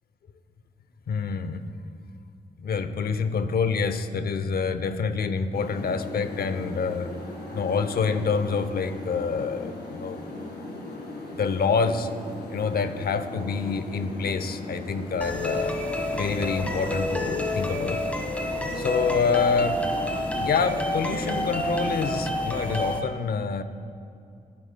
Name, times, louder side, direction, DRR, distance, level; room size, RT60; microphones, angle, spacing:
voice 1, 1.1-1.6 2.6-7.1 7.5-10.2 11.4-12.1 12.5-15.8 16.1-18.0 18.8-19.8 20.4-23.6, left 5 dB, 70° left, 11 dB, 0.7 m, -27 dB
sound 1, 5.5-22.3, left 2 dB, 85° left, 1.9 m, -38 dB
sound 2, 15.2-23.0, left 1 dB, 10° left, 1.4 m, -29 dB
18.5 x 9.6 x 2.2 m, 2.5 s
cardioid pair, 65°, 17 cm